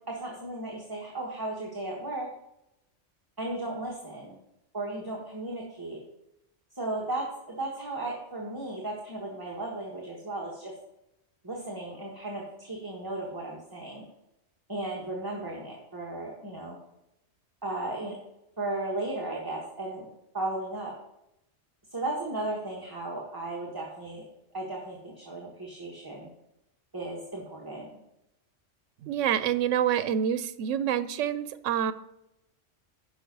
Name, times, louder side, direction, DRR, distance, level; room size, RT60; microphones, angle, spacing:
voice 1, 0.1-2.3 3.4-4.4 4.7-6.0 6.7-10.7 11.4-14.0 14.7-16.8 17.6-18.1 18.6-20.1 20.3-20.9 21.9-24.2 24.5-26.3 26.9-27.9, right 2 dB, 20° right, -3 dB, 1.5 m, -35 dB
voice 2, 29.0-31.9, right 9 dB, 80° right, 14 dB, 0.9 m, -27 dB
10.0 x 6.0 x 5.4 m, 0.87 s
omnidirectional pair, 1.3 m